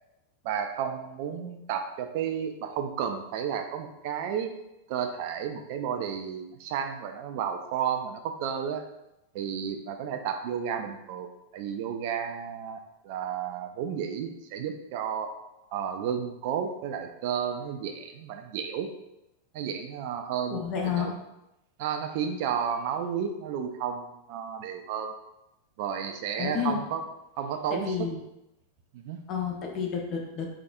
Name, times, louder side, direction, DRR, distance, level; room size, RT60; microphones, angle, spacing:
voice 1, 0.4-4.6 4.9-8.9 9.3-15.3 15.7-18.9 19.5-21.1 21.8-25.1 25.8-27.1 27.4-28.1 28.9-29.2, right 8 dB, 50° right, 6 dB, 0.4 m, -32 dB
voice 2, 20.5-21.1 26.4-26.8 27.7-28.2 29.3-30.5, left 7 dB, 35° left, 0 dB, 0.7 m, -30 dB
3.9 x 3.3 x 2.4 m, 0.90 s
figure-of-eight pair, 90°, 0 cm